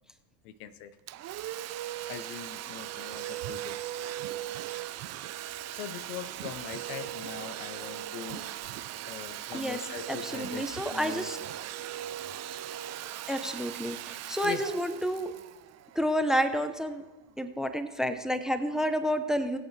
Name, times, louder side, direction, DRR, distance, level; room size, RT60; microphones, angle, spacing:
voice 1, 0.4-1.0 2.1-3.8 5.8-8.8 9.1-10.6 10.9-11.3 14.4-14.7, left 9 dB, 90° left, 13 dB, 0.9 m, -41 dB
Domestic sounds home sounds, 1.1-16.5, right 13 dB, 40° right, 0.5 m, -39 dB
sound 1, 3.4-3.9 4.2-5.8 6.3-7.6 8.2-9.8 10.4-11.6, right 12 dB, 70° right, 0.9 m, -48 dB
voice 2, 10.1-11.4 13.3-15.3 16.0-17.0 17.4-19.6, equal, ahead, 10 dB, 0.6 m, -30 dB
20.5 x 8.0 x 3.3 m, 1.2 s
supercardioid pair, 115°, 43 cm